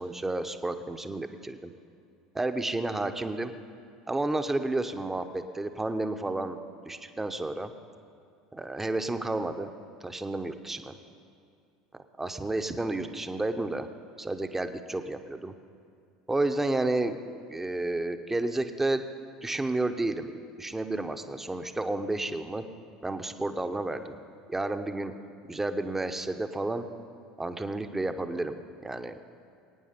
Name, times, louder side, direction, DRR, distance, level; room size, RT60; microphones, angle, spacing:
voice 1, 0.0-1.7 2.3-3.5 4.1-6.6 6.9-7.7 8.5-9.7 10.0-10.9 12.2-13.9 14.2-15.5 16.3-17.2 17.5-19.0 19.4-20.3 20.6-22.6 23.0-24.2 24.5-25.1 25.5-26.8 27.4-29.2, right 2 dB, 10° right, 8 dB, 1.0 m, -31 dB
22.0 x 9.3 x 5.2 m, 2.4 s
hypercardioid pair, 75°, 3 cm